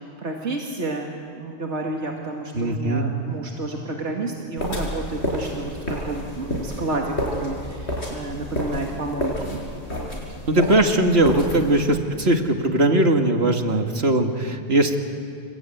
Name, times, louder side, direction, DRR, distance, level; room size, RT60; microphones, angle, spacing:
voice 1, 0.2-9.6 10.0-10.2 11.9-12.0, right 2 dB, 85° right, 0 dB, 2.6 m, -30 dB
voice 2, 2.6-3.1 10.5-12.0 12.3-15.0, right 1 dB, 65° right, 4 dB, 2.3 m, -19 dB
sound 1, 4.6-12.0, equal, 70° left, 5.9 m, -30 dB
28.0 x 22.0 x 9.3 m, 2.3 s
omnidirectional pair, 1.2 m